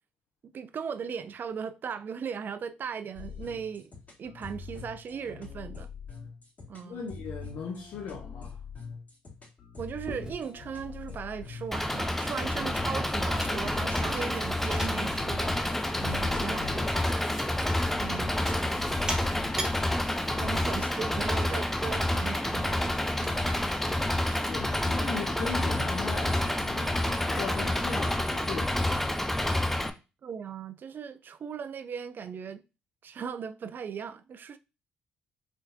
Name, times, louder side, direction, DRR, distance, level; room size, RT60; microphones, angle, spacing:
voice 1, 0.4-3.9 4.2-5.9 6.7-7.1 9.8-17.4 18.0-18.6 20.4-23.5 30.2-32.6 33.0-34.6, right 7 dB, 50° right, 0.4 m, -38 dB
sound 1, 3.1-20.7, left 6 dB, 40° left, 2.2 m, -44 dB
voice 2, 6.8-8.6 16.0-16.8 20.3-21.2 24.5-29.0, left 5 dB, 65° left, 0.9 m, -39 dB
Chewing mastication, 10.1-25.8, right 1 dB, 15° right, 1.0 m, -45 dB
Engine, 11.7-29.9, left 1 dB, 5° left, 0.5 m, -29 dB
3.6 x 3.4 x 2.6 m
hypercardioid pair, 55°, 4 cm